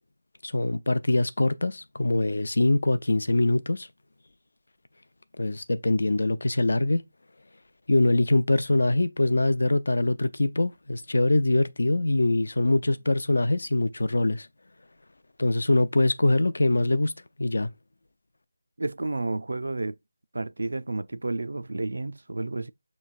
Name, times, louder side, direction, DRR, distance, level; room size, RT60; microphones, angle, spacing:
voice 1, 0.4-3.9 5.4-7.0 7.9-14.5 15.4-17.1 17.4-17.7, left 2 dB, 70° left, 0.5 m, -23 dB
voice 2, 18.8-20.0 20.3-22.7, right 2 dB, 80° right, 0.3 m, -31 dB
6.5 x 3.0 x 2.4 m
figure-of-eight pair, 175°, 0 cm